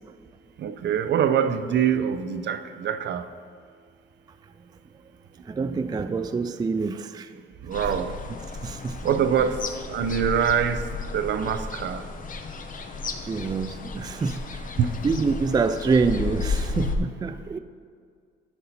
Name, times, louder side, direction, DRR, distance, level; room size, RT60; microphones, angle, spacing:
voice 1, 0.6-3.3 7.7-8.1 9.0-9.6 9.9-10.8 11.1-12.0 14.8-15.2, right 8 dB, 60° right, 10 dB, 0.6 m, -24 dB
voice 2, 5.5-7.3 8.6-9.0 13.2-14.8 15.0-17.6, right 4 dB, 20° right, 10 dB, 0.3 m, -26 dB
sound 1, 7.7-17.0, left 4 dB, 45° left, 0.8 m, -33 dB
12.5 x 5.5 x 4.2 m, 2.1 s
cardioid pair, 90°, 20 cm